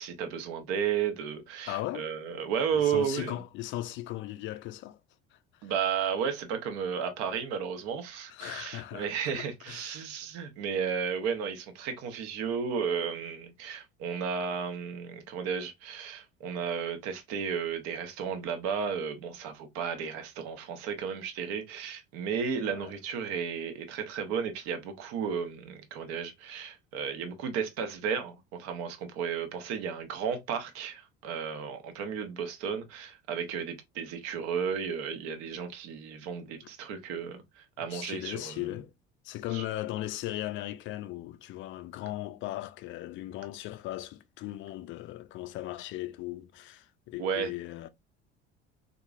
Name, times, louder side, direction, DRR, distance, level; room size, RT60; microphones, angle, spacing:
voice 1, 0.0-3.4 5.6-38.6 39.5-39.7 47.2-47.5, right 7 dB, 50° right, 0.9 m, -33 dB
voice 2, 1.7-2.1 2.7-5.0 5.6-5.7 8.3-9.1 9.3-10.1 22.6-22.9 37.9-38.9 39.2-47.9, left 15 dB, 35° left, 0.4 m, -38 dB
3.7 x 2.9 x 2.4 m
figure-of-eight pair, 65°, 34 cm